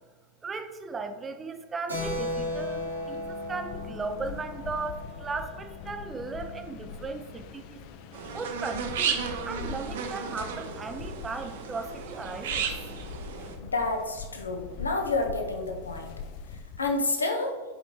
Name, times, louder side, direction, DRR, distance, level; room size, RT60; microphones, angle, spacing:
voice 1, 0.4-7.8 8.3-9.2 9.4-12.7, right 4 dB, 15° right, 8 dB, 0.6 m, -36 dB
Keyboard (musical), 1.9-6.0, left 1 dB, 90° right, 2.0 m, -36 dB
sound 1, 2.0-17.1, left 6 dB, 45° left, 0.5 m, -42 dB
sound 2, 8.1-13.6, right 6 dB, 55° right, 0.8 m, -34 dB
voice 2, 13.6-16.1 16.8-17.5, left 3 dB, 75° left, 3 dB, 0.9 m, -29 dB
7.5 x 5.2 x 3.1 m, 1.3 s
figure-of-eight pair, 90°, 0 cm